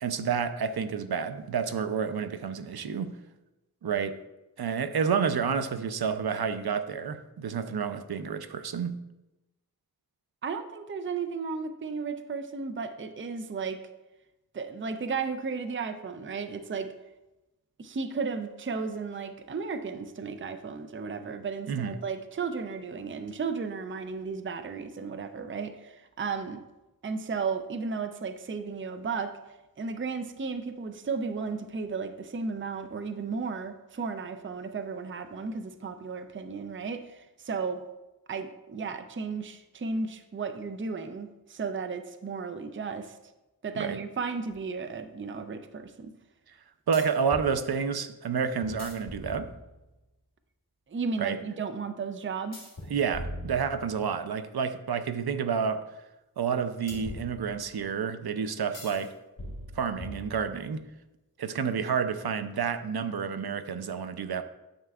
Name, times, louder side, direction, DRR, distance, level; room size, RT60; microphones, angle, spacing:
voice 1, 0.0-3.2 3.8-4.2 4.6-9.0 21.7-22.0 43.8-44.0 46.9-49.5 51.2-51.4 52.9-55.8 56.4-59.2 59.7-60.8 61.4-64.4, right 6 dB, 85° right, 0.5 m, -29 dB
voice 2, 10.4-13.8 14.5-16.9 17.8-26.6 27.0-29.4 29.8-37.8 38.3-43.2 43.6-46.1 50.9-52.7, right 5 dB, 35° right, 0.5 m, -34 dB
sound 1, 44.5-44.6 46.9-47.5 48.6-49.9 52.5-54.2 56.9-57.9 58.7-59.1 59.4-60.7, left 1 dB, 60° left, 1.5 m, -41 dB
9.4 x 6.6 x 2.4 m
wide cardioid pair, 60°, 37 cm